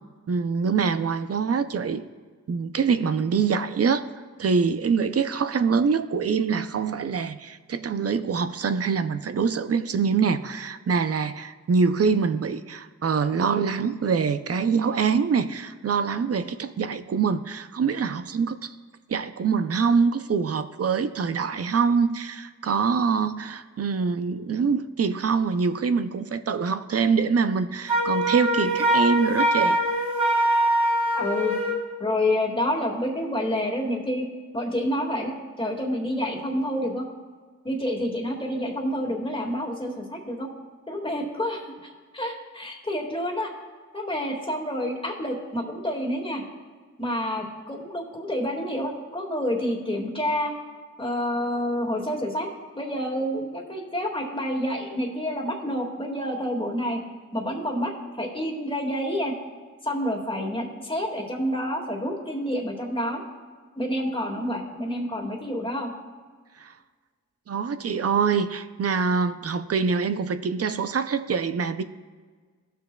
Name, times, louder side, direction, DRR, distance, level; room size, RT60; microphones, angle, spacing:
voice 1, 0.3-2.0 2.5-4.0 4.4-18.7 19.1-29.8 66.6-66.7 67.5-71.8, right 5 dB, 50° right, 12 dB, 0.5 m, -24 dB
Wind instrument woodwind instrument, 27.9-31.8, right 1 dB, 20° right, 2.4 m, -23 dB
voice 2, 31.1-31.5 32.0-34.3 34.5-37.1 37.6-40.5 40.9-41.6 42.1-43.5 43.9-46.4 47.0-50.5 51.0-52.5 52.8-57.0 57.3-57.9 58.2-59.4 59.8-63.2 63.8-65.9, equal, 15° left, -1 dB, 1.9 m, -28 dB
17.0 x 6.4 x 2.3 m, 1.5 s
cardioid pair, 50°, 30 cm